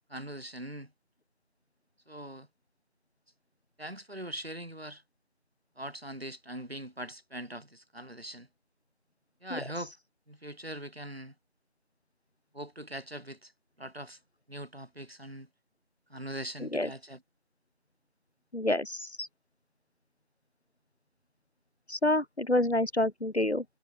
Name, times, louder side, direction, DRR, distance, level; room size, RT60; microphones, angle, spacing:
voice 1, 0.1-0.9 2.1-2.5 3.8-5.0 5.8-8.5 9.4-9.9 10.3-11.3 12.5-13.5 13.8-14.2 14.5-15.5 16.1-17.2, right 1 dB, 70° right, 6.7 m, -41 dB
voice 2, 16.6-16.9 18.5-19.3 21.9-23.6, left 1 dB, 85° left, 2.2 m, -28 dB
figure-of-eight pair, 175°, 32 cm